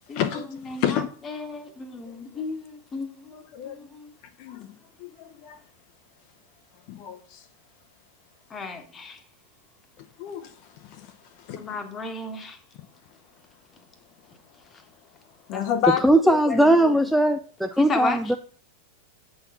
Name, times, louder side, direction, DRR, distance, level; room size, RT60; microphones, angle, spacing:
voice 1, 0.1-1.1 2.1-2.2 3.3-3.8 4.4-4.7 5.0-5.6 6.9-7.5 10.0-11.7 15.5-16.9, left 9 dB, 45° left, 0.7 m, -30 dB
voice 2, 0.7-4.1 8.5-9.2 11.6-12.6 15.5-15.6 17.8-18.4, left 3 dB, 20° left, 1.2 m, -33 dB
voice 3, 16.0-18.4, right 1 dB, ahead, 0.4 m, -19 dB
7.9 x 4.0 x 5.5 m
figure-of-eight pair, 90°, 0 cm